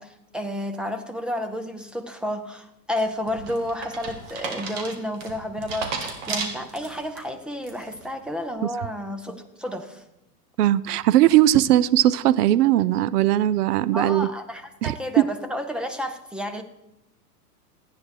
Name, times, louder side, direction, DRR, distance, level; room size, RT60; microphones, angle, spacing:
voice 1, 0.0-10.0 13.9-16.6, left 1 dB, ahead, 7 dB, 0.4 m, -31 dB
sound 1, 3.0-7.2 7.6-8.1, right 5 dB, 50° right, 2.7 m, -33 dB
voice 2, 10.6-14.3 14.8-14.9, right 13 dB, 70° right, 19 dB, 0.7 m, -19 dB
14.5 x 9.3 x 4.7 m, 0.91 s
hypercardioid pair, 120°, 48 cm